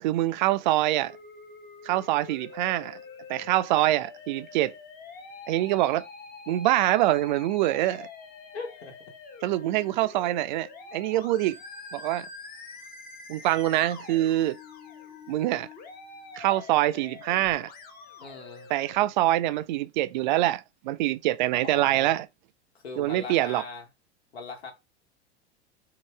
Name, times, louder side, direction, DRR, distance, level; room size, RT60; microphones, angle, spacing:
voice 1, 0.0-1.1 1.8-3.0 3.3-4.7 5.5-6.0 6.5-8.1 9.4-11.6 11.9-12.3 13.3-14.6 15.3-15.7 16.3-17.7 18.7-22.3 23.0-23.6, right 15 dB, 45° right, 0.4 m, -25 dB
Musical instrument, 1.0-19.0, left 4 dB, 30° left, 1.0 m, -45 dB
voice 2, 8.5-9.0 18.2-18.7 21.6-22.2 22.7-23.8 24.3-24.7, left 4 dB, 70° left, 1.4 m, -39 dB
3.8 x 3.7 x 3.2 m
figure-of-eight pair, 85°, 33 cm